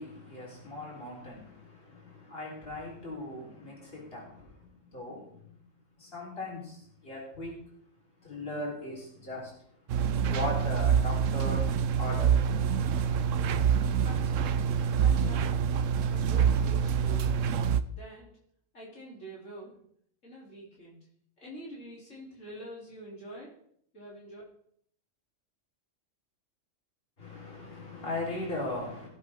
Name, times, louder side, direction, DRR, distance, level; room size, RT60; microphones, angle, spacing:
voice 1, 0.0-5.6 6.0-7.6 8.2-9.5 10.3-11.7 12.0-12.4 13.1-13.3 27.2-29.1, left 1 dB, 45° left, -3 dB, 4.1 m, -38 dB
sound 1, 9.9-17.8, right 7 dB, 75° right, 1.0 m, -26 dB
voice 2, 14.0-15.6 16.1-17.5 17.9-18.3 18.7-19.8 20.2-21.1 21.4-23.5 23.9-24.4, right 1 dB, 70° left, -5 dB, 3.7 m, -46 dB
18.0 x 8.2 x 3.6 m, 0.65 s
omnidirectional pair, 1.3 m